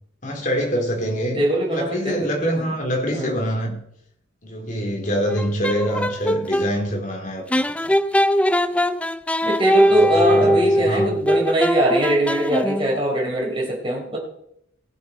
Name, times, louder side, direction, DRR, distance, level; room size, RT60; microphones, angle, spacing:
voice 1, 0.2-1.4 1.7-3.8 4.4-7.4 9.9-11.2, equal, 45° left, 1 dB, 3.5 m, -25 dB
voice 2, 1.4-2.6 3.1-3.4 9.4-14.2, right 1 dB, 30° right, -2 dB, 4.2 m, -22 dB
sound 1, 5.3-6.7 7.5-13.0, equal, 5° left, 0.4 m, -21 dB
19.0 x 8.6 x 4.4 m, 0.74 s
head